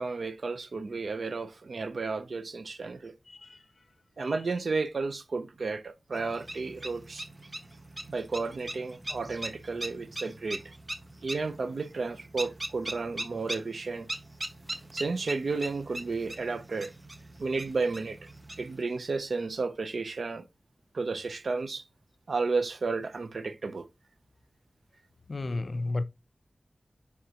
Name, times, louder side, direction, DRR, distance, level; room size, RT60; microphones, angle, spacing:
voice 1, 0.0-3.1 4.2-7.2 8.1-10.6 11.2-14.1 14.9-16.9 17.4-18.2 18.6-20.4 20.9-21.8 22.3-23.9, right 4 dB, 80° right, 0.6 m, -32 dB
voice 2, 3.3-3.6 4.2-4.3 25.3-26.0, left 2 dB, 65° left, 0.5 m, -32 dB
sound 1, 6.1-18.8, right 1 dB, 35° right, 0.8 m, -41 dB
9.4 x 3.6 x 2.9 m
wide cardioid pair, 70°, 0 cm